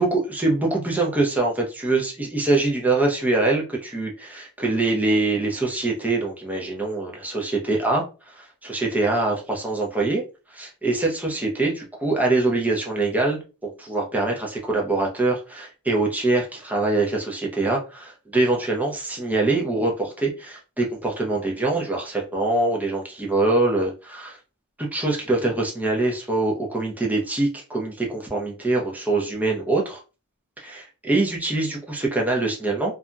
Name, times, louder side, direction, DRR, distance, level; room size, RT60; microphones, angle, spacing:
voice 1, 0.0-8.0 8.3-10.2 10.5-24.4 24.8-30.0 30.6-32.9, right 2 dB, 5° right, 0.6 m, -24 dB
2.8 x 2.5 x 2.2 m
head